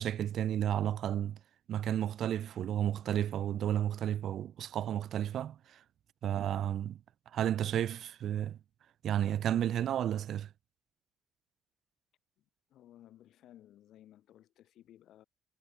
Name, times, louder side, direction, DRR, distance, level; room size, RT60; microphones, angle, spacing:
voice 1, 0.0-1.4 1.7-5.8 6.2-7.0 7.3-8.6 9.0-10.5, right 10 dB, 70° right, 0.3 m, -32 dB
voice 2, 12.7-15.3, left 12 dB, 80° left, 2.7 m, -58 dB
cardioid pair, 90°, 0 cm